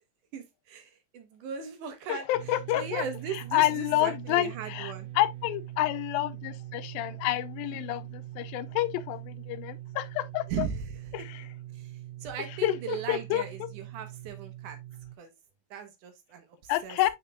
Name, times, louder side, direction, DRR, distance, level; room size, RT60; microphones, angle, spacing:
voice 1, 0.3-5.1 10.5-11.3 11.7-14.8 15.2-15.3 15.7-17.0, right 7 dB, 70° right, 2.2 m, -38 dB
voice 2, 2.1-3.0 3.5-10.7 11.1-11.2 12.6-13.4 16.7-17.1, left 15 dB, 85° left, 2.3 m, -29 dB
sound 1, 2.3-15.2, right 14 dB, 85° right, 2.5 m, -42 dB
7.9 x 5.7 x 2.2 m
omnidirectional pair, 4.2 m